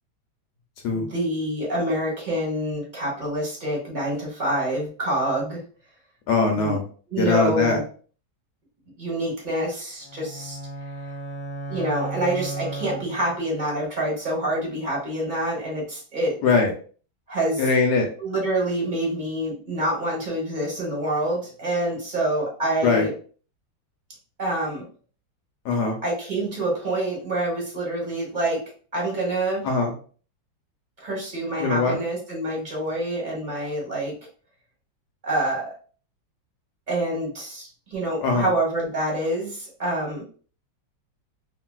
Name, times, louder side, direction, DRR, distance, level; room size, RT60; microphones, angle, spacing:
voice 1, 0.9-5.6 6.5-6.8 7.1-7.8 9.0-10.6 11.7-16.4 17.3-17.7 18.2-23.1 24.4-24.8 26.0-28.6 28.9-29.7 31.0-34.1 35.2-35.7 36.9-40.2, right 1 dB, 30° right, -3 dB, 1.0 m, -26 dB
voice 2, 6.3-6.8 7.2-7.8 16.4-16.7 17.6-18.1 22.8-23.1 25.6-26.0 29.6-29.9 31.6-32.0 38.2-38.5, left 4 dB, 70° left, 2 dB, 1.1 m, -21 dB
sound 1, 10.0-13.5, right 2 dB, 25° left, 0.9 m, -34 dB
3.1 x 2.6 x 2.2 m, 0.41 s
omnidirectional pair, 2.1 m